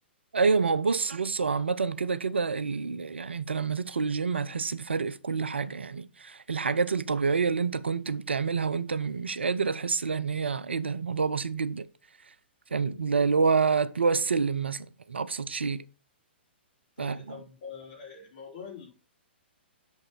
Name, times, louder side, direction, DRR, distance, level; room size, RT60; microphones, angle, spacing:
voice 1, 0.3-11.9 12.7-15.8 17.0-17.2, right 5 dB, 75° right, 0.6 m, -28 dB
voice 2, 12.7-13.0 17.0-18.9, left 6 dB, 45° left, 3.7 m, -45 dB
7.2 x 5.5 x 4.5 m
figure-of-eight pair, 115°, 6 cm